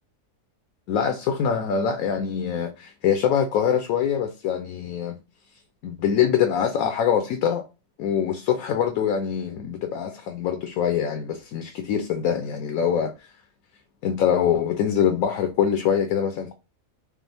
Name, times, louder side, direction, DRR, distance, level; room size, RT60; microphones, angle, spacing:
voice 1, 0.9-5.2 5.8-7.6 8.0-13.3 14.0-16.5, left 8 dB, 75° left, 1.0 m, -24 dB
5.2 x 2.0 x 3.3 m
omnidirectional pair, 1.5 m